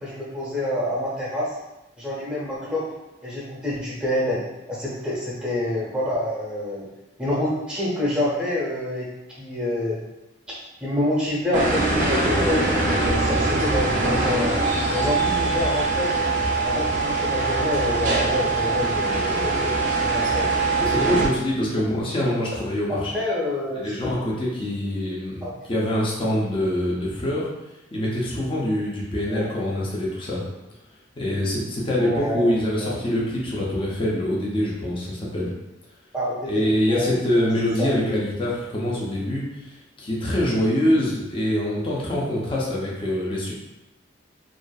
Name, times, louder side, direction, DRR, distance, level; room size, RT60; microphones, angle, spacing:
voice 1, 0.0-1.5 2.0-2.8 3.2-4.4 4.7-6.9 7.2-9.1 9.4-10.0 10.8-14.6 14.9-16.1 16.6-20.5 20.8-20.9 22.9-23.9 25.4-25.5 29.3-29.5 32.0-32.5 32.8-33.0 36.1-37.5 37.8-37.9, left 1 dB, 5° right, -6 dB, 0.7 m, -27 dB
sound 1, 11.5-21.3, right 3 dB, 40° right, 0.4 m, -22 dB
voice 2, 20.8-23.1 23.8-27.5 27.9-30.4 31.2-35.5 36.5-43.5, left 1 dB, 25° left, -4 dB, 0.5 m, -24 dB
2.5 x 2.4 x 2.2 m, 0.96 s
head